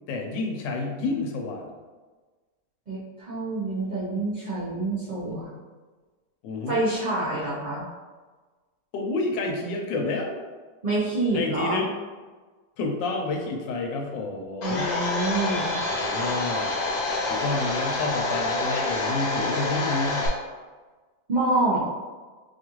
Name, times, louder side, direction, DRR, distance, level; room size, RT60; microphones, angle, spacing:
voice 1, 0.1-1.7 6.4-6.8 8.9-10.3 11.3-11.9 12.8-14.9 15.9-16.7 17.3-20.3, left 3 dB, 80° left, 2 dB, 1.3 m, -29 dB
voice 2, 2.9-5.6 6.7-7.8 10.8-11.8 14.6-15.8 21.3-21.9, right 2 dB, 70° right, -8 dB, 0.4 m, -27 dB
Domestic sounds home sounds, 14.6-20.3, left 2 dB, 60° left, 1.2 m, -27 dB
4.8 x 2.4 x 3.0 m, 1.3 s
omnidirectional pair, 1.9 m